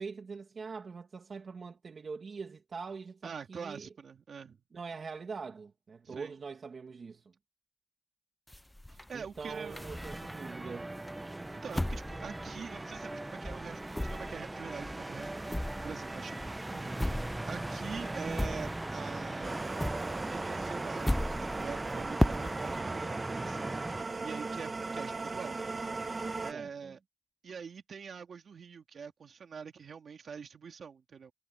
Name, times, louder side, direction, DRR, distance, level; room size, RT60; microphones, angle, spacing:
voice 1, 0.0-3.9 4.7-7.3 9.1-11.0 16.7-17.1 26.5-26.9, right 5 dB, 70° right, 2.2 m, -43 dB
voice 2, 3.2-4.6 6.0-6.3 8.9-9.8 11.5-16.5 17.0-19.6 20.3-25.6 26.4-27.0 27.4-31.3, right 6 dB, 90° right, 3.2 m, -45 dB
sound 1, 8.5-10.6 11.1-13.2 13.4-19.1 19.4-22.8, left 1 dB, 10° left, 0.4 m, -36 dB
sound 2, 9.5-24.0, right 2 dB, 25° right, 0.9 m, -39 dB
sound 3, 19.4-26.5, right 3 dB, 45° right, 1.7 m, -38 dB
wide cardioid pair, 75°, 0 cm